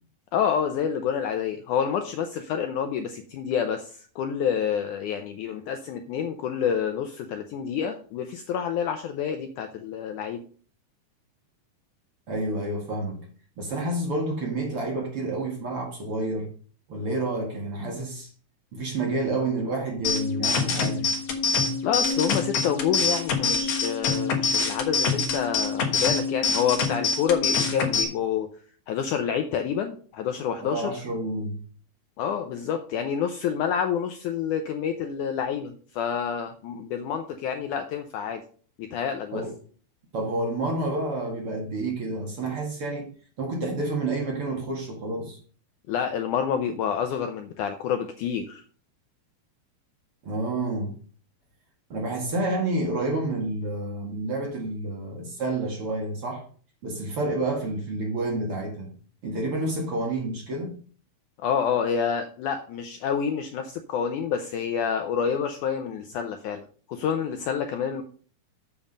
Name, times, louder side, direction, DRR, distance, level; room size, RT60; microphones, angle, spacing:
voice 1, 0.3-10.4 21.8-28.5 28.9-30.9 32.2-38.4 38.8-39.4 45.9-48.6 61.4-68.0, left 7 dB, 80° left, 6 dB, 1.9 m, -28 dB
voice 2, 12.3-13.2 13.6-16.5 16.9-18.3 18.7-21.1 30.6-31.6 39.3-39.5 40.1-43.1 43.4-45.4 50.2-50.9 51.9-56.4 56.8-58.9 59.2-60.7, right 2 dB, 45° right, 0 dB, 2.3 m, -29 dB
sound 1, 20.0-28.0, left 4 dB, 55° left, 2.0 m, -25 dB
7.2 x 7.2 x 5.3 m, 0.43 s
omnidirectional pair, 4.3 m